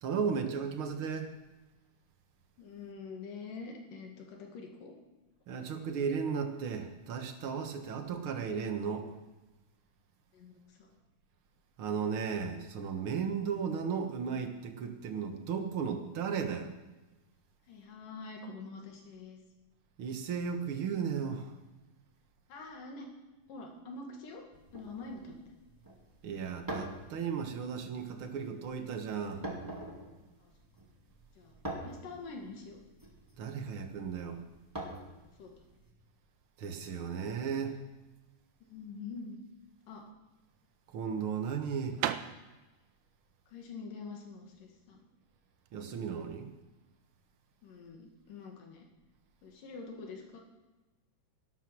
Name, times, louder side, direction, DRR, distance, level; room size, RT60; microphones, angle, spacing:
voice 1, 0.0-1.3 5.5-9.2 11.8-16.7 20.0-21.5 26.2-29.4 33.4-34.4 36.6-37.8 40.9-42.0 45.7-46.5, right 6 dB, 55° right, 5 dB, 1.6 m, -35 dB
voice 2, 2.6-4.9 10.3-10.9 17.7-19.4 22.5-23.1 23.5-24.4 24.7-25.5 30.4-30.5 31.4-32.8 35.4-35.5 38.6-39.4 39.9-40.0 43.5-45.0 47.6-48.9 49.4-50.4, left 4 dB, 85° left, 2 dB, 3.6 m, -46 dB
sound 1, 24.5-35.9, right 1 dB, 5° right, 1.8 m, -46 dB
sound 2, 40.1-45.8, right 12 dB, 85° right, 2.2 m, -40 dB
13.5 x 12.0 x 6.1 m, 1.1 s
omnidirectional pair, 3.7 m